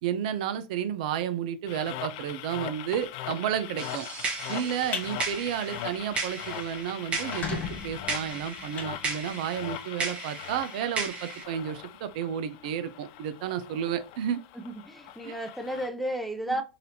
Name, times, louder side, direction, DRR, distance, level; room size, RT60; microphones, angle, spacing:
voice 1, 0.0-4.1 4.5-14.4 15.2-15.3, right 9 dB, 60° right, 0.5 m, -32 dB
sound 1, 1.7-15.9, left 12 dB, 55° left, 0.4 m, -41 dB
sound 2, 3.8-11.4, right 4 dB, 25° right, 1.1 m, -36 dB
sound 3, 4.7-5.1 5.5-5.8 6.1-6.2 6.5-6.6 7.1-9.6, left 5 dB, 30° left, 0.8 m, -36 dB
voice 2, 14.5-16.6, right 1 dB, ahead, 0.5 m, -33 dB
4.0 x 2.6 x 2.8 m
hypercardioid pair, 105°, 5 cm